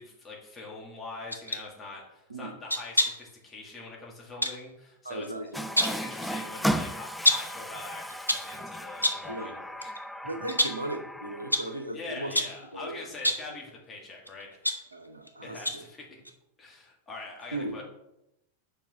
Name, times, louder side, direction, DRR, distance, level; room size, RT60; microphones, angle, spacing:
voice 1, 0.0-5.3 5.8-9.9 11.9-14.6 15.4-16.2 16.6-17.8, left 3 dB, 15° left, -2 dB, 2.3 m, -43 dB
sound 1, 1.3-1.6 2.7-3.3 4.4-4.6 5.5-6.1 7.2-7.6 8.1-8.5 9.0-9.3 9.8-10.0 10.5-10.9 11.5-11.8 12.3-12.6 13.1-13.5 14.3-15.3 15.6-15.9 16.2-16.3, left 1 dB, 90° left, 0.7 m, -28 dB
voice 2, 5.0-5.6 9.3-9.5 10.2-12.3 12.7-13.1 14.9-15.8 17.5-17.8, right 1 dB, 80° right, 6 dB, 0.9 m, -37 dB
Water tap faucet, 5.5-11.9, equal, ahead, 0.4 m, -35 dB
5.2 x 5.2 x 5.7 m, 0.87 s
figure-of-eight pair, 90°, 0 cm